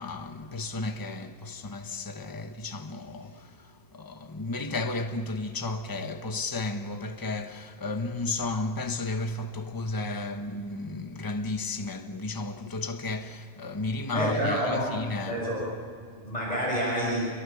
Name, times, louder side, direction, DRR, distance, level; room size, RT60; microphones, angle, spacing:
voice 1, 0.0-15.5, left 2 dB, 20° left, 1.1 m, -33 dB
voice 2, 14.1-15.0 15.2-15.6 16.2-17.3, equal, 35° left, 7.0 m, -28 dB
28.0 x 23.0 x 7.1 m
omnidirectional pair, 1.2 m